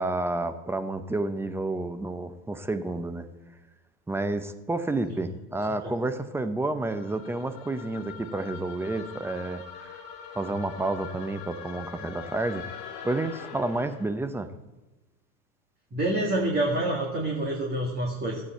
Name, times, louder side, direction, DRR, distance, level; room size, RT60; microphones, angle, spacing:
voice 1, 0.0-3.3 4.1-10.0 10.3-12.7 13.0-14.5, right 2 dB, 5° right, 10 dB, 0.6 m, -30 dB
sound 1, 6.9-14.1, left 7 dB, 55° left, 2.5 m, -42 dB
voice 2, 15.9-18.4, right 1 dB, 20° right, -2 dB, 2.0 m, -27 dB
14.5 x 8.5 x 4.5 m, 1.1 s
hypercardioid pair, 105°, 44 cm